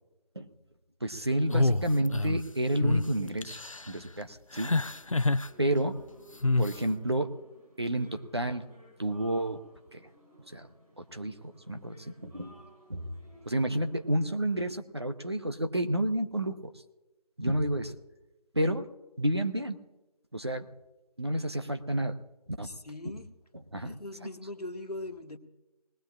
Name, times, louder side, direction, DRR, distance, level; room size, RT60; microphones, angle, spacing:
voice 1, 1.0-3.6 3.9-4.7 5.6-6.0 6.6-7.3 7.8-8.6 9.0-9.6 9.9-10.0 10.5-10.7 11.0-11.4 11.7-12.5 12.9-13.0 13.5-16.7 17.4-18.0 18.5-18.9 19.2-19.8 20.3-20.7 21.2-22.2 22.6-22.7 23.0-23.1 23.7-23.9, right 1 dB, 40° right, 7 dB, 0.8 m, -30 dB
sound 1, 1.5-2.4 2.8-3.1 3.4-3.9 4.5-5.5 6.4-6.8, left 2 dB, 55° left, 0.5 m, -27 dB
sound 2, 4.5-14.1, equal, 60° right, 4.6 m, -58 dB
voice 2, 22.6-23.3 23.8-25.4, left 2 dB, 70° left, 4 dB, 1.7 m, -40 dB
20.0 x 19.0 x 2.4 m, 1.0 s
figure-of-eight pair, 170°, 21 cm